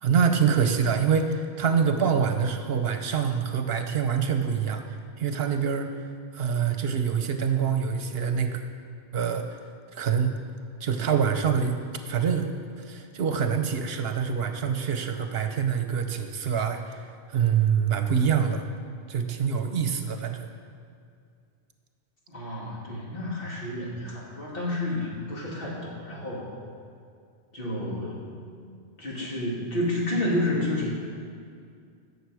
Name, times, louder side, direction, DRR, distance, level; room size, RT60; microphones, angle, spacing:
voice 1, 0.0-4.8 5.2-6.0 6.3-8.6 9.1-9.5 9.9-10.3 10.8-11.8 12.1-17.0 17.3-18.6 19.1-20.5, right 7 dB, 70° right, 7 dB, 1.0 m, -25 dB
voice 2, 22.3-26.5 27.5-28.4 29.0-31.0, left 1 dB, 60° left, -4 dB, 2.5 m, -30 dB
16.0 x 6.8 x 4.8 m, 2.3 s
omnidirectional pair, 1.1 m